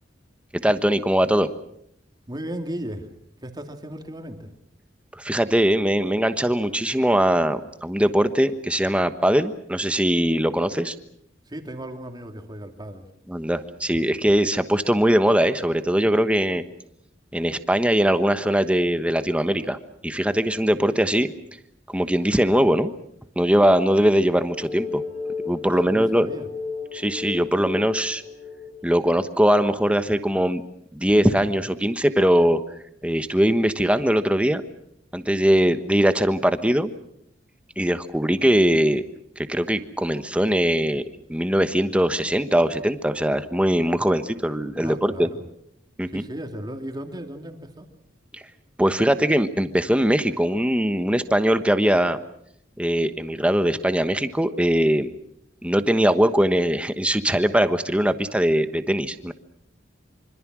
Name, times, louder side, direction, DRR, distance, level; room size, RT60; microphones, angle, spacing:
voice 1, 0.5-1.5 5.1-10.9 13.3-16.6 17.3-19.8 20.0-21.3 21.9-22.9 23.4-25.0 25.4-26.3 26.9-28.2 28.8-30.6 30.9-32.6 33.0-34.6 35.1-36.9 37.8-39.0 39.4-45.3 46.0-46.2 48.3-48.4 48.8-52.2 52.8-55.1 55.6-59.3, equal, 5° right, 10 dB, 1.2 m, -21 dB
voice 2, 2.3-3.1 3.4-4.5 11.5-13.1 25.7-26.5 44.8-45.5 46.1-47.9, right 1 dB, 20° right, 5 dB, 2.7 m, -35 dB
sound 1, 24.5-29.1, left 4 dB, 40° left, 5.4 m, -33 dB
25.5 x 25.5 x 6.2 m, 0.72 s
head